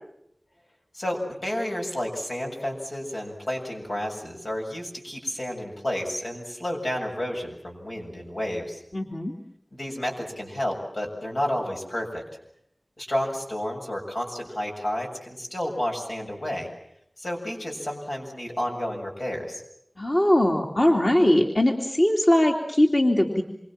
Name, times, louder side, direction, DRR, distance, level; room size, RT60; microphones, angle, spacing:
voice 1, 0.9-8.8 9.7-12.2 13.0-16.7 17.2-19.6, left 1 dB, 90° left, 0 dB, 7.4 m, -31 dB
voice 2, 8.9-9.3 20.0-23.4, left 1 dB, 50° left, 2 dB, 2.9 m, -21 dB
27.5 x 25.0 x 7.5 m, 0.76 s
wide cardioid pair, 45°, 0 cm